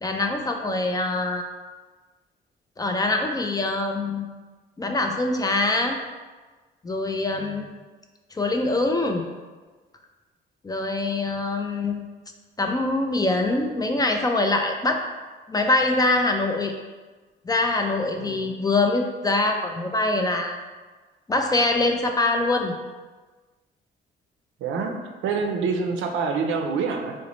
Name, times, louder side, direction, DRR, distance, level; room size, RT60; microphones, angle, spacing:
voice 1, 0.0-1.5 2.8-4.3 4.8-6.0 6.8-7.7 8.3-9.3 10.6-12.0 12.6-15.0 15.5-16.7 17.4-20.6 21.3-22.7, left 2 dB, 20° left, 3 dB, 0.3 m, -24 dB
voice 2, 18.2-18.5 24.6-27.1, right 5 dB, 80° right, 3 dB, 0.5 m, -27 dB
3.8 x 2.1 x 3.0 m, 1.3 s
cardioid pair, 90°, 20 cm